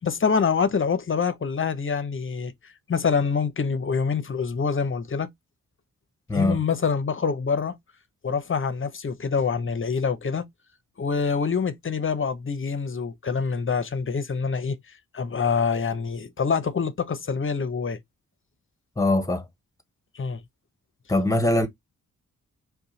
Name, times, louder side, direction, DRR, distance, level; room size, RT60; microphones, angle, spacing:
voice 1, 0.0-2.5 2.9-5.3 6.3-7.8 8.2-10.5 11.0-14.8 15.1-18.0 20.1-20.4, left 5 dB, 35° left, 0.6 m, -25 dB
voice 2, 19.0-19.5 21.1-21.7, left 2 dB, 10° left, 0.9 m, -22 dB
5.3 x 2.2 x 3.1 m
wide cardioid pair, 90°, 34 cm